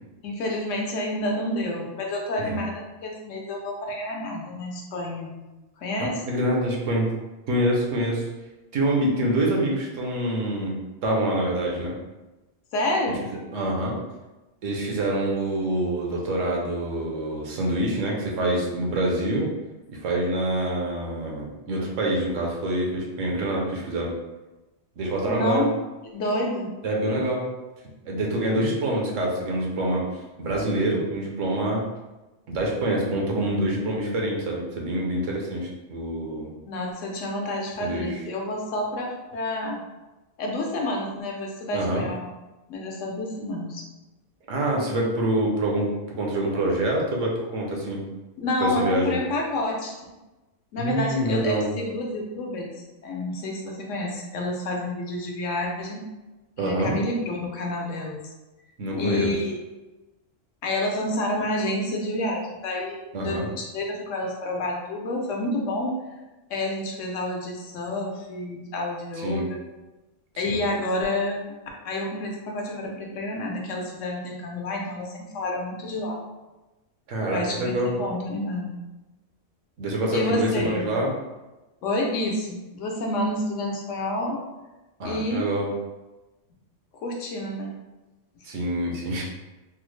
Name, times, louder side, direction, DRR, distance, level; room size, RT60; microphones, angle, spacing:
voice 1, 0.2-5.3 5.8-6.2 12.7-13.2 25.3-25.7 26.1-26.7 36.7-39.8 40.4-42.3 42.7-43.8 48.4-49.9 50.7-52.7 53.0-56.0 56.6-58.2 58.9-59.5 60.6-66.0 66.5-69.6 70.4-71.4 71.8-76.2 77.3-78.7 80.1-80.9 81.8-84.4 85.0-85.4 87.0-87.7, left 1 dB, 80° left, 0 dB, 1.0 m, -29 dB
voice 2, 6.0-7.1 7.5-8.3 8.7-10.8 11.0-11.9 13.1-13.2 13.5-14.0 14.6-19.5 19.9-24.1 25.0-25.7 26.8-27.5 28.1-30.1 30.4-31.9 32.5-36.5 37.8-38.2 41.7-42.1 44.5-48.0 48.6-49.2 50.8-51.7 56.6-57.0 58.8-59.3 63.1-63.5 69.2-69.5 70.5-70.6 77.1-78.0 79.8-81.1 85.0-85.7 88.4-89.2, right 1 dB, 85° right, -1 dB, 1.1 m, -26 dB
3.6 x 2.0 x 3.1 m, 1.1 s
omnidirectional pair, 1.3 m